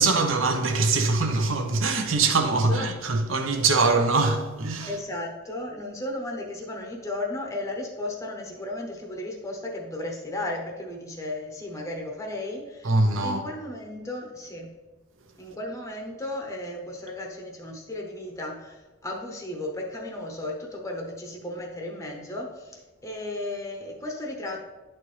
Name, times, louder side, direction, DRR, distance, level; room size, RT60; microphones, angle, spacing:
voice 1, 0.0-4.9 12.8-13.4, right 3 dB, 75° right, 0.8 m, -23 dB
voice 2, 2.5-3.0 4.8-14.7 15.4-24.6, left 1 dB, 15° left, 0.8 m, -35 dB
11.0 x 4.3 x 3.2 m
head